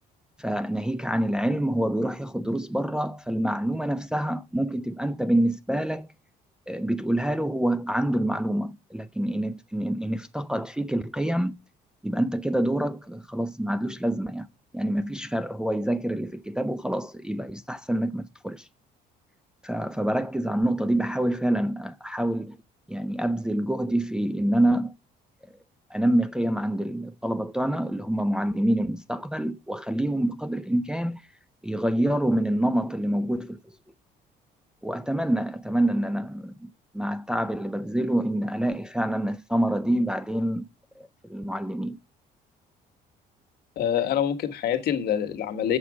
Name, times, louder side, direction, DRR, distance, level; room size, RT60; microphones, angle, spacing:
voice 1, 0.4-6.1 6.7-11.6 12.0-14.5 14.7-18.7 19.6-22.6 22.9-24.9 25.9-31.2 31.6-33.6 34.8-40.6 41.0-42.0, right 1 dB, 5° right, 0.5 m, -26 dB
voice 2, 43.8-45.8, left 9 dB, 70° left, 1.4 m, -25 dB
8.4 x 7.2 x 4.8 m
cardioid pair, 110°, 17 cm